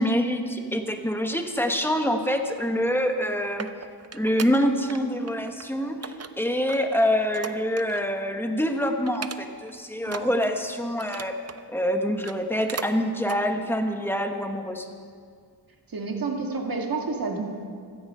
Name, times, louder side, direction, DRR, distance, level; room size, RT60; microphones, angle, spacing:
voice 1, 0.0-3.7 4.1-11.4 11.7-14.9, equal, 5° left, 5 dB, 1.1 m, -26 dB
sound 1, 3.0-5.0 5.3-5.7 6.0-8.2 8.5-8.7 9.1-9.7 10.0-11.6 12.1-12.9 13.2-13.4 13.9-14.0, right 5 dB, 35° right, 0.6 m, -39 dB
voice 2, 15.9-17.4, right 4 dB, 50° right, 1 dB, 2.0 m, -29 dB
16.0 x 14.5 x 5.5 m, 2.1 s
wide cardioid pair, 140°, 44 cm